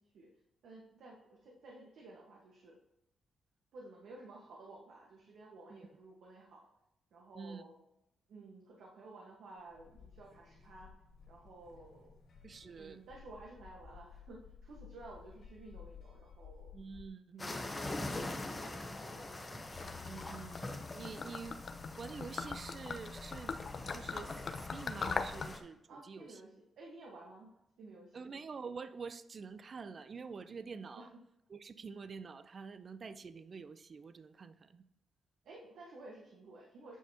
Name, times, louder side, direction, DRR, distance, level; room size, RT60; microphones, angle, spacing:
voice 1, 0.6-2.8 3.7-6.7 7.1-7.7 8.3-10.9 11.3-12.1 12.8-16.7 17.3-19.6 25.9-26.5 26.8-28.3 30.9-31.2 35.4-37.0, right 2 dB, 80° right, -1 dB, 1.2 m, -54 dB
sound 1, 9.6-17.1, left 6 dB, 65° left, 2.3 m, -56 dB
voice 2, 12.4-13.0 16.7-17.4 20.1-21.6 22.0-23.6 23.9-26.4 28.1-31.1 31.5-34.8, right 5 dB, 40° right, 12 dB, 0.4 m, -47 dB
sound 2, 17.4-25.6, left 2 dB, 15° left, 0.9 m, -44 dB
Gurgling / Liquid, 19.7-25.5, left 5 dB, 45° left, 0.5 m, -41 dB
8.9 x 5.5 x 2.8 m, 0.87 s
cardioid pair, 130°, 0 cm